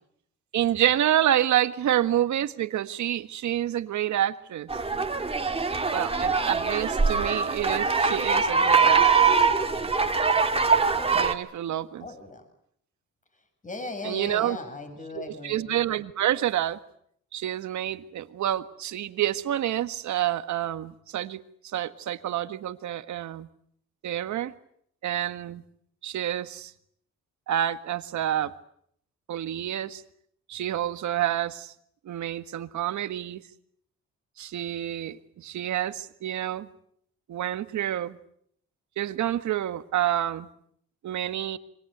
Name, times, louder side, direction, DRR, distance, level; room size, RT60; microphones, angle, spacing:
voice 1, 0.5-4.7 5.9-9.3 11.1-12.1 14.0-14.6 15.1-16.8 17.3-23.5 24.0-24.5 25.0-25.6 26.0-26.7 27.5-28.5 29.3-30.0 30.5-31.7 32.0-33.4 34.4-36.7 37.3-38.2 39.0-40.5 41.0-41.6, right 12 dB, 70° right, 11 dB, 1.7 m, -28 dB
sound 1, 4.7-11.3, right 5 dB, 20° right, 2.4 m, -23 dB
voice 2, 12.0-12.4 13.6-15.6, left 2 dB, 25° left, 7 dB, 7.6 m, -37 dB
27.0 x 25.0 x 8.1 m, 0.69 s
cardioid pair, 90°, 30 cm